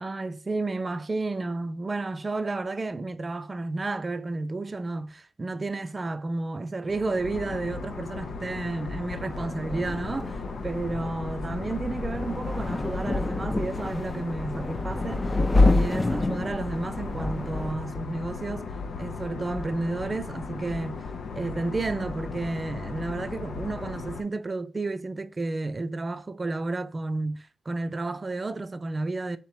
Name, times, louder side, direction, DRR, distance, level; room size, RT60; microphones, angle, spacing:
voice 1, 0.0-18.7 19.0-21.0 21.3-29.4, right 2 dB, 35° right, 0.4 m, -31 dB
sound 1, 6.9-24.2, left 4 dB, 70° left, 0.5 m, -37 dB
sound 2, 9.3-17.7, left 2 dB, 25° left, 0.5 m, -28 dB
3.7 x 2.9 x 4.7 m
cardioid pair, 65°, 0 cm